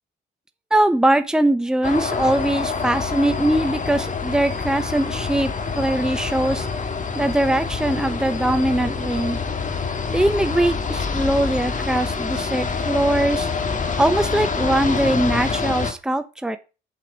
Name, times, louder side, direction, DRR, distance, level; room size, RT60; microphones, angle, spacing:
voice 1, 0.7-5.5 5.8-6.7 7.1-9.4 10.1-13.5 14.0-16.6, right 1 dB, 5° right, 9 dB, 1.1 m, -21 dB
sound 1, 1.8-15.9, left 5 dB, 40° left, 2.3 m, -26 dB
8.3 x 8.0 x 5.3 m, 0.30 s
cardioid pair, 90°, 20 cm